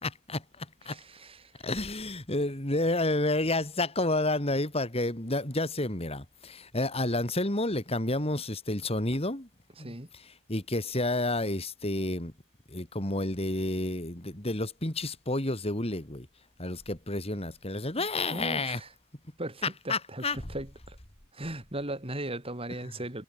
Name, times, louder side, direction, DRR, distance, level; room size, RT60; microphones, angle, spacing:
voice 1, 0.0-1.0 1.6-9.5 9.8-12.3 12.7-16.3 16.6-18.8 19.9-20.5, left 2 dB, 25° left, 3.0 m, -30 dB
voice 2, 0.9-1.5 9.8-10.1 18.0-18.9 19.4-20.2 20.5-21.0 21.3-23.2, right 1 dB, 25° right, 3.9 m, -38 dB
head